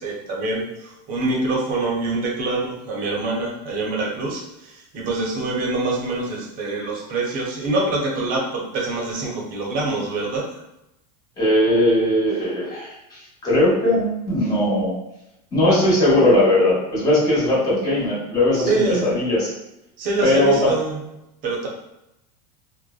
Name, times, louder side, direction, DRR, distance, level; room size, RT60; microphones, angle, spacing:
voice 1, 0.0-10.5 18.5-19.1 20.0-21.0 21.4-21.7, right 2 dB, 40° right, -2 dB, 0.7 m, -25 dB
voice 2, 11.4-14.9 15.5-19.5 20.2-20.7, left 1 dB, 20° left, -8 dB, 1.2 m, -19 dB
2.5 x 2.1 x 2.3 m, 0.88 s
supercardioid pair, 135°, 21 cm